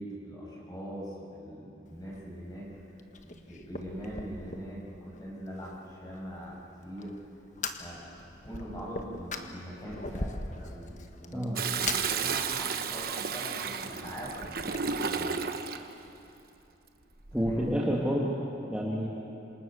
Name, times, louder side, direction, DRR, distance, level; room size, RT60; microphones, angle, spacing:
voice 1, 0.0-6.6 6.8-7.2 7.8-8.1 8.4-15.4 17.4-17.6, equal, 20° left, -4 dB, 7.3 m, -42 dB
Fire, 1.8-14.8, left 3 dB, 45° left, 1.4 m, -42 dB
Toilet flush, 11.6-15.9 17.2-17.7, right 6 dB, 55° right, 1.1 m, -33 dB
voice 2, 17.3-18.3 18.7-19.1, equal, 5° right, -4 dB, 2.2 m, -28 dB
27.0 x 27.0 x 6.6 m, 2.9 s
head